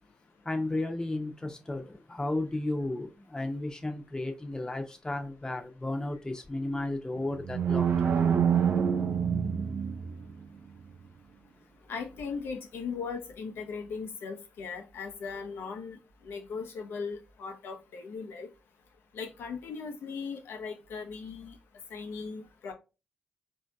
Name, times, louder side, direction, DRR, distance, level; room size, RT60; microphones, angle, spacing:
voice 1, 0.4-8.2, left 2 dB, 20° left, 0.8 m, -34 dB
sound 1, 7.2-10.4, right 7 dB, 70° right, 0.5 m, -26 dB
voice 2, 11.9-16.0 16.2-18.5 19.1-21.6 21.9-22.7, left 5 dB, 80° left, 0.7 m, -38 dB
4.2 x 2.7 x 2.3 m
supercardioid pair, 50°, 4 cm